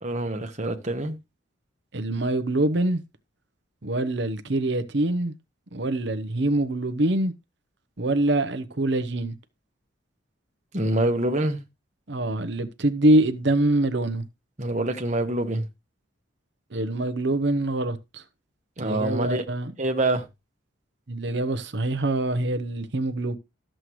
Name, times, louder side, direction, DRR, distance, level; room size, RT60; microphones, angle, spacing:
voice 1, 0.0-1.1 10.7-11.6 14.6-15.6 18.8-19.4 19.8-20.2, right 1 dB, 35° right, 1.3 m, -25 dB
voice 2, 1.9-3.0 3.8-5.3 5.7-7.3 8.0-9.4 12.1-14.2 16.7-18.2 18.8-19.7 21.1-23.4, right 1 dB, 60° right, 0.9 m, -24 dB
13.0 x 7.6 x 3.1 m
head